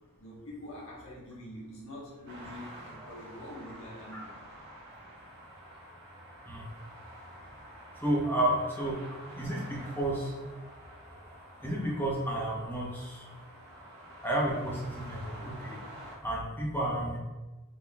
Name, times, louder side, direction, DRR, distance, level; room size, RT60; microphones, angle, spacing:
voice 1, 0.2-4.5, left 1 dB, 65° left, -6 dB, 1.3 m, -45 dB
sound 1, 2.2-16.2, equal, 50° right, 1.2 m, -49 dB
voice 2, 8.0-9.0 9.3-10.3 11.6-13.2 14.2-15.8 16.2-17.2, right 1 dB, 10° left, -4 dB, 0.9 m, -31 dB
5.1 x 4.1 x 2.4 m, 1.2 s
head